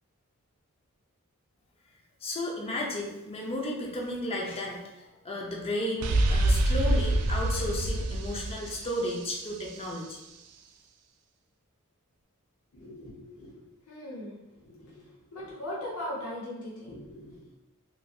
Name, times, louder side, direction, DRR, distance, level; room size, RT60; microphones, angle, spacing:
voice 1, 2.2-4.8 5.2-10.2, left 1 dB, 25° left, -1 dB, 0.5 m, -33 dB
sound 1, 6.0-9.8, right 1 dB, 80° right, 0.3 m, -26 dB
voice 2, 12.7-13.5 13.9-17.5, left 1 dB, 75° left, -5 dB, 0.8 m, -40 dB
3.0 x 2.6 x 2.3 m, 0.99 s
head